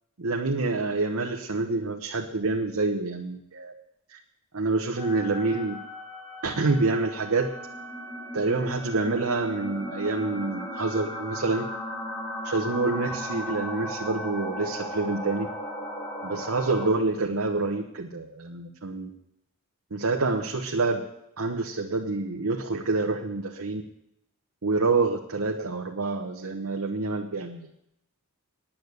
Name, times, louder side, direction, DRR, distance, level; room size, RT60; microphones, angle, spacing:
voice 1, 0.2-3.7 4.1-4.2 4.5-5.8 6.4-7.5 8.3-11.6 12.4-15.5 16.2-19.1 19.9-21.1 21.4-23.8 24.6-27.6, right 3 dB, 85° right, 1 dB, 1.1 m, -27 dB
sound 1, 5.0-16.9, equal, 15° left, 2.2 m, -36 dB
10.0 x 9.0 x 8.0 m, 0.81 s
head